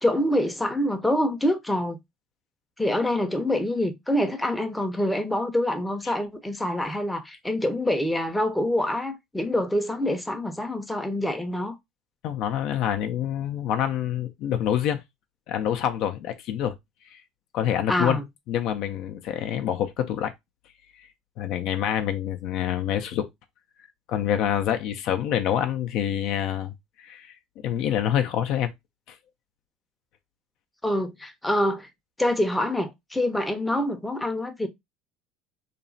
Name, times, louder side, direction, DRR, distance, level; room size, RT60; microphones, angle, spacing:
voice 1, 0.0-2.0 2.8-11.8 17.9-18.2 30.8-31.9 32.2-34.7, left 1 dB, 5° left, 0.6 m, -26 dB
voice 2, 12.2-15.0 15.5-16.8 17.1-17.2 17.5-18.2 18.5-20.3 21.4-23.3 24.1-27.4 27.6-28.7 29.1-29.2, left 10 dB, 65° left, 0.4 m, -26 dB
2.9 x 2.0 x 2.6 m
supercardioid pair, 90°, 0 cm